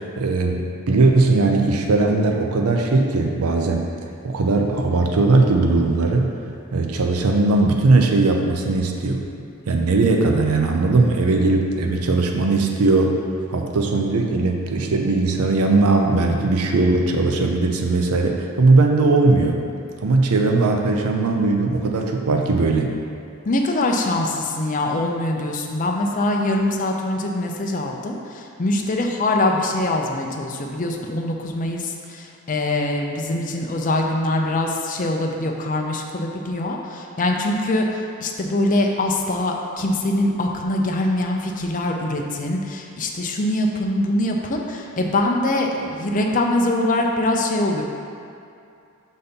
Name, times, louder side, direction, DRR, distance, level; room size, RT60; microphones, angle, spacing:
voice 1, 0.0-3.9 4.2-6.3 6.7-9.2 9.7-13.2 13.5-19.6 20.0-22.9, right 3 dB, 75° right, 2 dB, 0.6 m, -19 dB
voice 2, 23.5-47.8, left 1 dB, 35° left, 1 dB, 0.5 m, -23 dB
5.6 x 4.2 x 5.1 m, 2.5 s
head